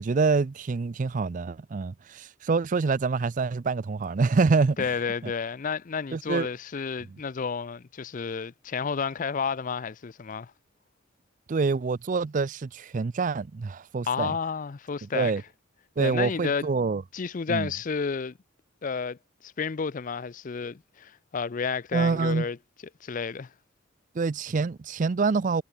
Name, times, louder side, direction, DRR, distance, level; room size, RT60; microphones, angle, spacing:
voice 1, 0.0-4.9 5.2-5.3 6.1-6.5 11.5-14.4 15.0-15.4 16.0-17.0 17.5-17.7 21.9-22.5 24.1-25.6, right 4 dB, 40° right, 0.4 m, -26 dB
voice 2, 4.8-10.5 14.0-15.3 16.0-16.7 17.1-18.3 18.8-19.2 19.4-22.6 23.0-23.5, left 5 dB, 40° left, 0.4 m, -31 dB
head